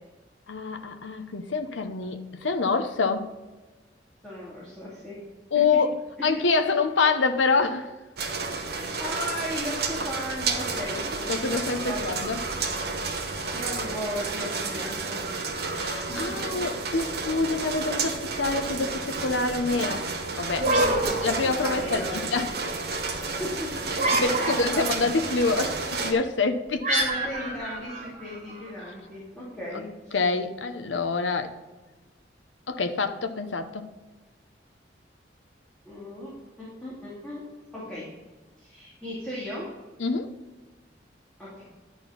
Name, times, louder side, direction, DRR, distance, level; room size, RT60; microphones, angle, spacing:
voice 1, 0.5-3.3 5.5-5.9 6.2-7.9 11.3-12.4 15.7-20.0 20.4-20.7 21.2-22.5 24.1-26.9 30.1-31.5 32.7-33.8 40.0-40.4, left 4 dB, 85° left, 7 dB, 0.8 m, -26 dB
voice 2, 4.2-5.1 6.2-6.4 8.7-12.0 13.2-15.2 16.3-16.4 21.6-22.2 23.2-25.1 26.9-30.2 35.9-36.3 36.6-37.4 37.7-38.1 38.6-39.6 41.4-41.6, equal, 5° left, -9 dB, 2.4 m, -36 dB
sound 1, 8.2-26.1, right 4 dB, 55° right, 1.1 m, -31 dB
sound 2, 20.6-22.1 23.9-25.0 26.8-28.7, right 2 dB, 40° right, 2.2 m, -27 dB
11.0 x 4.5 x 5.7 m, 1.2 s
head